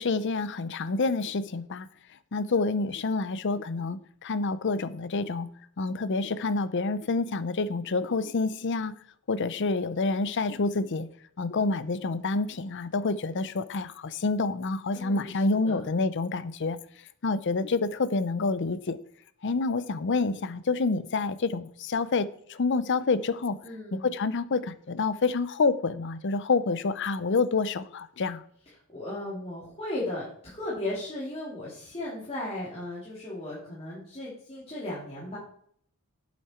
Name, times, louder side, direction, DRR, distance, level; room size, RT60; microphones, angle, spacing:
voice 1, 0.0-1.9 2.3-5.5 5.8-8.9 9.3-11.1 11.4-16.8 17.2-19.0 19.4-23.6 23.9-28.4, left 3 dB, 55° left, 15 dB, 0.6 m, -28 dB
voice 2, 14.9-15.9 23.6-24.1 28.9-35.4, left 1 dB, 25° left, -8 dB, 2.9 m, -36 dB
8.6 x 7.3 x 4.4 m, 0.62 s
head